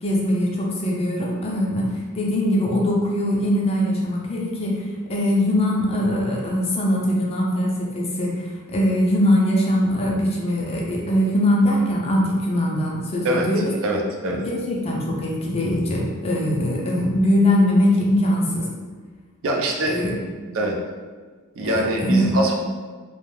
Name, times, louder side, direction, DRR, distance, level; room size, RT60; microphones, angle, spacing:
voice 1, 0.0-13.7 14.3-18.7 19.9-20.1 21.6-22.4, left 1 dB, 25° left, -3 dB, 0.4 m, -21 dB
voice 2, 13.2-14.4 19.4-20.0 20.5-20.7 21.6-22.5, right 1 dB, 65° right, 1 dB, 0.4 m, -24 dB
2.3 x 2.2 x 3.0 m, 1.5 s
head